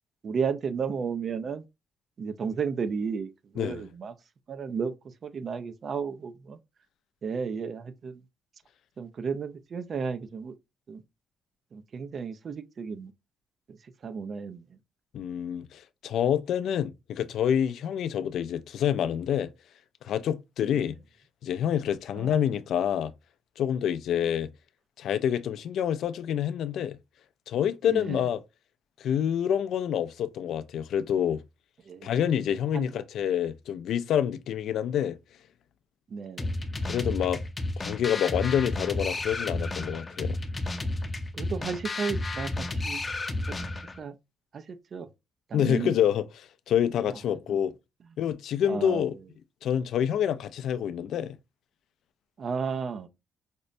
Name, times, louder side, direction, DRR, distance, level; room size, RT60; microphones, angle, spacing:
voice 1, 0.2-1.6 2.2-3.3 3.5-4.1 4.5-4.9 5.2-6.6 7.2-8.2 9.0-10.5 10.9-11.0 11.7-13.1 14.0-14.6 20.8-20.9 22.1-22.3 27.9-28.2 31.9-32.1 32.7-32.9 36.1-36.5 41.3-43.0 43.5-43.7 44.0-44.1 44.5-45.1 45.5-45.9 48.7-49.0 52.4-53.1, right 6 dB, 50° right, 0.5 m, -33 dB
voice 2, 15.1-19.5 20.0-21.0 21.4-23.1 23.6-24.5 25.0-27.0 27.5-28.4 29.0-31.4 32.0-35.2 36.9-37.4 37.8-40.4 45.5-47.7 48.2-49.1 49.6-51.4, left 9 dB, 75° left, 0.3 m, -27 dB
sound 1, 36.4-44.0, left 2 dB, 30° left, 0.6 m, -32 dB
5.1 x 2.1 x 2.5 m
cardioid pair, 90°, 0 cm